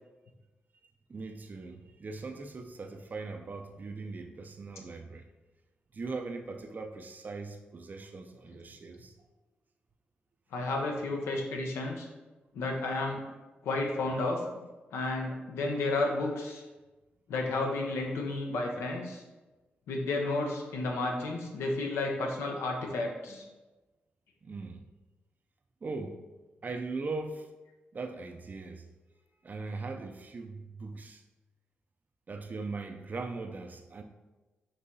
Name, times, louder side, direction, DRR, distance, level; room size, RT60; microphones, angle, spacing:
voice 1, 1.1-5.2 5.9-9.1 23.3-23.4 24.4-24.8 25.8-26.3 26.6-27.5 27.9-28.9 29.4-31.2 32.3-34.0, right 3 dB, 45° right, 4 dB, 0.4 m, -40 dB
voice 2, 10.5-12.1 12.5-13.2 13.6-14.4 14.9-16.6 17.3-19.2 19.9-23.4, left 2 dB, 85° left, 1 dB, 0.6 m, -32 dB
5.3 x 3.0 x 2.7 m, 1.2 s
supercardioid pair, 50°, 4 cm